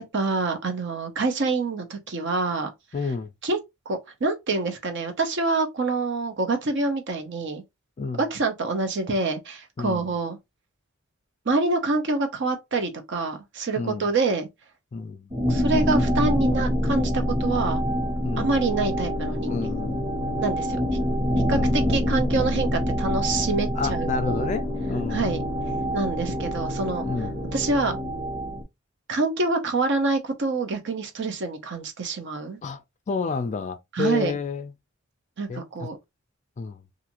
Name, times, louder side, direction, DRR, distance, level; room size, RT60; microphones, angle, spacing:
voice 1, 0.1-2.7 3.4-3.6 3.9-7.6 8.2-10.4 11.5-14.5 15.5-17.8 18.4-19.7 20.4-20.8 21.5-24.5 25.1-25.4 25.9-27.0 27.5-28.0 29.1-32.6 33.9-34.3 35.4-36.0, right 3 dB, 55° right, 0.7 m, -26 dB
voice 2, 2.9-3.3 8.0-8.2 9.8-10.1 13.8-14.0 14.9-15.3 18.2-18.6 19.5-20.4 21.5-22.0 23.8-25.4 27.1-27.3 32.6-32.8 33.1-34.7 35.5-35.9 36.6-36.8, left 4 dB, 35° left, 0.3 m, -30 dB
sound 1, 15.3-28.6, equal, 15° right, 1.0 m, -26 dB
2.5 x 2.4 x 2.8 m
head